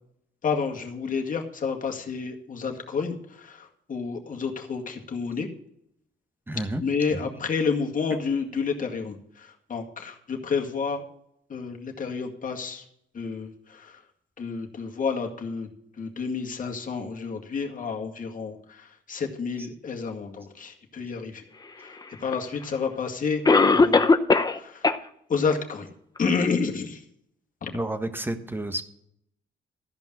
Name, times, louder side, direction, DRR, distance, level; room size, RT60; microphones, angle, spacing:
voice 1, 0.4-5.5 6.8-11.0 11.5-12.8 13.1-14.0 14.4-15.7 16.0-21.4 21.8-24.1 24.5-24.9 25.3-25.9 26.2-27.0 27.6-27.7, left 5 dB, 40° left, 2 dB, 2.1 m, -30 dB
voice 2, 6.5-6.8 7.1-7.4 19.6-19.7 27.7-28.8, right 1 dB, 10° right, 8 dB, 1.3 m, -31 dB
Cough, 22.3-22.4 23.4-24.6 24.8-25.0 25.5-25.6 26.2-26.3, left 3 dB, 20° left, 0.7 m, -18 dB
14.0 x 5.4 x 7.3 m, 0.74 s
cardioid pair, 90°, 20 cm